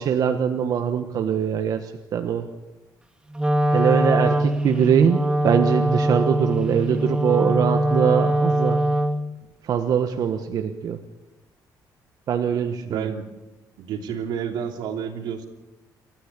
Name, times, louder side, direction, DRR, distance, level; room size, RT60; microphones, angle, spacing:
voice 1, 0.0-2.5 3.7-8.8 9.6-11.0 12.3-13.1, right 8 dB, 55° right, 6 dB, 1.4 m, -22 dB
Wind instrument woodwind instrument, 3.3-9.4, right 1 dB, 10° right, 0.9 m, -22 dB
voice 2, 12.5-13.2 13.8-15.5, right 8 dB, 85° right, 4 dB, 3.0 m, -30 dB
28.5 x 14.0 x 8.4 m, 1.1 s
cardioid pair, 130°, 7 cm